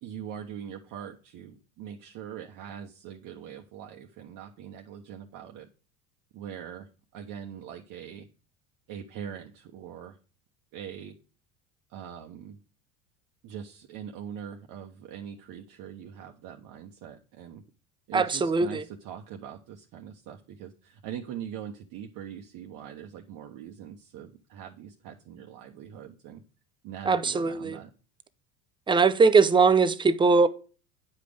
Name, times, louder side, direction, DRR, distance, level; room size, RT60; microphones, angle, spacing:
voice 1, 0.0-5.7 6.3-8.3 8.9-10.2 10.7-11.1 11.9-12.6 13.4-17.6 18.1-26.4 26.8-27.9, right 9 dB, 45° right, 1.0 m, -42 dB
voice 2, 18.1-18.8 27.1-27.8 28.9-30.5, right 4 dB, 10° right, 0.6 m, -21 dB
9.5 x 5.1 x 5.0 m
hypercardioid pair, 75°, 44 cm